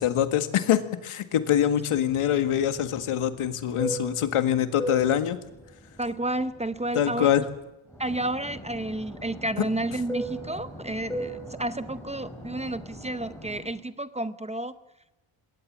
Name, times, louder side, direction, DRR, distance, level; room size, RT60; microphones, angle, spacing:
voice 1, 0.0-5.4 7.0-7.4, left 10 dB, 85° left, 9 dB, 1.9 m, -24 dB
Fixed-wing aircraft airplane, 2.2-7.6 7.9-13.7, right 1 dB, 5° left, 5.4 m, -38 dB
voice 2, 6.0-7.3 8.0-14.7, right 1 dB, 15° right, 12 dB, 0.7 m, -31 dB
21.0 x 18.0 x 7.6 m, 0.91 s
wide cardioid pair, 145°, 50 cm